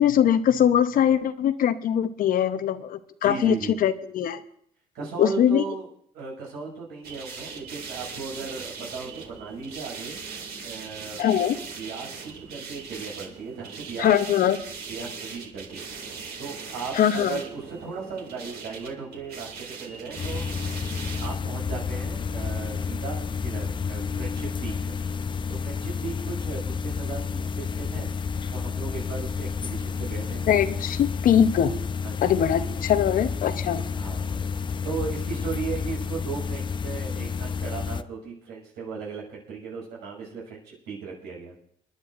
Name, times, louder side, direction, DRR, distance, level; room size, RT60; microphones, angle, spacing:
voice 1, 0.0-4.4 5.2-5.6 11.2-11.6 14.0-14.6 16.9-17.4 30.5-31.7 32.2-33.8, left 9 dB, 55° left, 11 dB, 0.8 m, -22 dB
voice 2, 3.2-3.8 4.9-5.9 6.1-10.2 10.6-11.2 11.8-14.1 14.9-15.9 16.4-20.4 21.2-24.9 25.5-28.1 28.5-30.4 32.0-32.4 34.0-41.5, right 5 dB, 90° right, -2 dB, 6.4 m, -36 dB
sound 1, 7.0-21.4, right 5 dB, 65° right, 2.4 m, -40 dB
sound 2, 20.2-38.0, left 5 dB, 30° left, 0.5 m, -30 dB
29.5 x 10.5 x 2.5 m, 0.65 s
cardioid pair, 110°, 17 cm